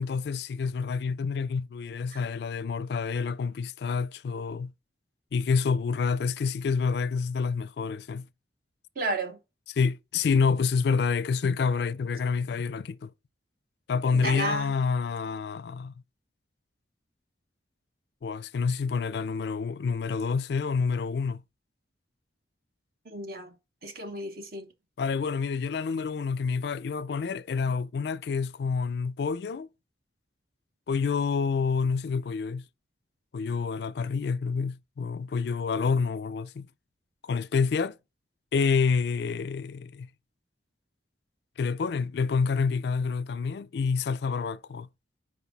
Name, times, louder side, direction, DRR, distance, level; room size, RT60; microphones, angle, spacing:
voice 1, 0.0-4.7 5.3-8.3 9.8-13.1 13.9-15.9 18.2-21.4 25.0-29.7 30.9-32.6 33.3-36.7 37.2-38.0 38.5-40.1 41.6-44.9, left 5 dB, 65° left, 0.4 m, -28 dB
voice 2, 8.9-9.4 14.1-14.7 23.0-23.5 23.8-24.7, right 2 dB, 55° right, 1.1 m, -32 dB
5.8 x 4.9 x 4.0 m
head